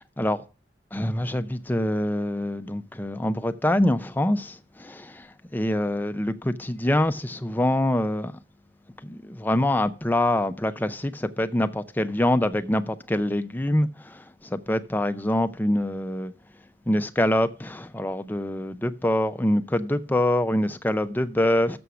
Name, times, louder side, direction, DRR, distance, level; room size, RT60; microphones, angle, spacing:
voice 1, 0.9-8.3 9.0-16.3 16.9-21.8, left 1 dB, 10° left, 0.5 m, -25 dB
6.9 x 6.3 x 6.8 m
head